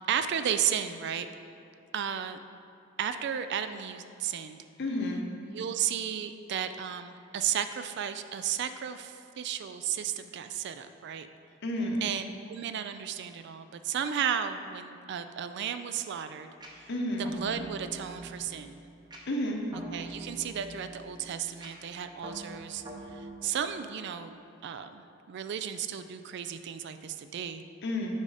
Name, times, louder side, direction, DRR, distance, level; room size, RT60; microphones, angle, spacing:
voice 1, 0.1-1.3 1.9-2.4 3.0-4.6 5.5-11.3 12.0-16.9 17.2-18.8 19.9-22.8 23.1-24.3 24.6-27.6, right 8 dB, 55° right, 10 dB, 0.3 m, -34 dB
voice 2, 4.8-5.2 11.6-12.0 16.9-17.3 19.3-19.6 27.8-28.2, left 1 dB, 55° left, 1 dB, 0.9 m, -30 dB
sound 1, 16.6-23.4, right 2 dB, 20° right, 0.8 m, -45 dB
8.6 x 4.9 x 4.1 m, 2.6 s
head